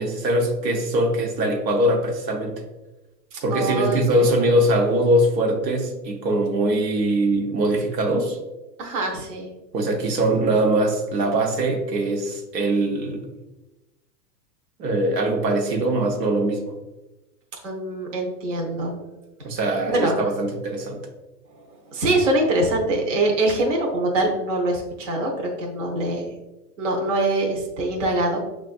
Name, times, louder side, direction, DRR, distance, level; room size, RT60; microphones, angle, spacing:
voice 1, 0.0-2.6 3.4-8.4 9.7-13.2 14.8-16.6 19.4-21.0, right 1 dB, 85° right, 2 dB, 1.0 m, -22 dB
voice 2, 3.3-4.3 8.8-9.5 17.6-19.1 19.9-20.2 21.5-26.3 26.8-28.4, right 2 dB, 50° right, -1 dB, 0.8 m, -24 dB
5.8 x 2.5 x 2.4 m, 1.0 s
hypercardioid pair, 170°, 49 cm